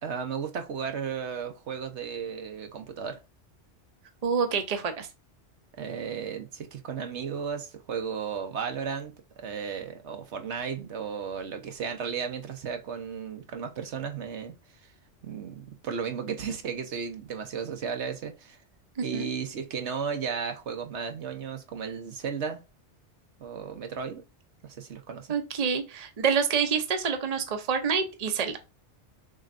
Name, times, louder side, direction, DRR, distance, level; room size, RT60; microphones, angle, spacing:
voice 1, 0.0-3.2 5.8-9.1 9.4-14.5 15.2-18.6 19.0-22.6 23.4-24.2 24.6-25.4, right 6 dB, 75° right, 1.2 m, -34 dB
voice 2, 4.2-5.1 19.0-19.3 25.3-28.6, right 6 dB, 40° right, 0.8 m, -27 dB
6.5 x 3.1 x 2.6 m
omnidirectional pair, 1.2 m